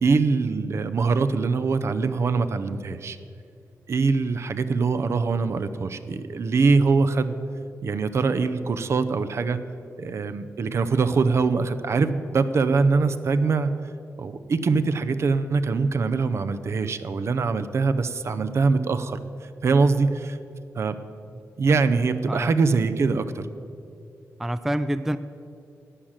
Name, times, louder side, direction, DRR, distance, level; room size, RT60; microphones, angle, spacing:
voice 1, 0.0-3.2 3.9-7.3 7.8-9.6 10.0-13.7 14.2-19.2 19.6-20.4 20.8-20.9 21.6-23.4, right 4 dB, 50° right, 11 dB, 0.6 m, -23 dB
voice 2, 24.4-25.2, right 1 dB, 5° right, 12 dB, 0.3 m, -27 dB
11.5 x 8.8 x 7.4 m, 2.5 s
wide cardioid pair, 130°, 6 cm